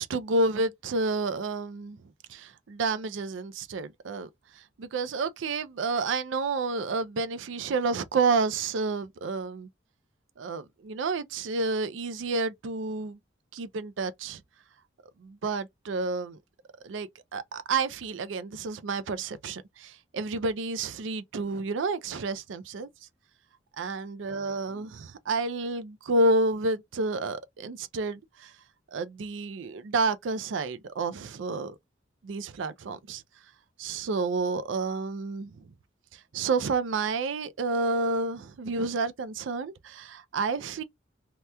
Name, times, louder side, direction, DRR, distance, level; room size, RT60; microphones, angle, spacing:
voice 1, 0.0-2.0 2.3-4.3 4.8-9.7 10.4-13.2 13.5-14.4 15.2-16.4 16.8-22.9 23.8-28.5 28.9-31.8 32.2-33.2 33.8-35.6 36.3-40.8, right 3 dB, 80° right, 0.4 m, -30 dB
2.9 x 2.2 x 3.4 m
head